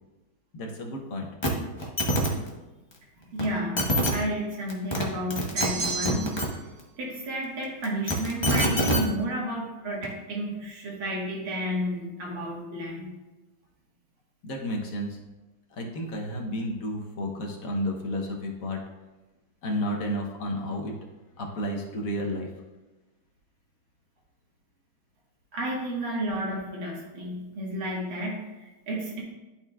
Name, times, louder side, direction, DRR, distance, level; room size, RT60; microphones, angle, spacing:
voice 1, 0.5-1.3 14.4-15.2 15.7-18.8 19.6-20.9 21.4-22.5, equal, 55° left, 1 dB, 1.2 m, -31 dB
sound 1, 1.4-1.5 1.8-2.3 3.4-3.5 3.8-4.1 4.7-5.0 5.3-6.5 7.8-9.0 10.0-10.1, equal, 30° left, 0.5 m, -24 dB
voice 2, 3.2-6.2 7.0-13.1 25.5-29.2, equal, 80° right, -3 dB, 2.4 m, -32 dB
sound 2, 5.6-6.6, right 3 dB, 50° right, 1.9 m, -31 dB
12.0 x 4.3 x 2.4 m, 1.1 s
omnidirectional pair, 2.2 m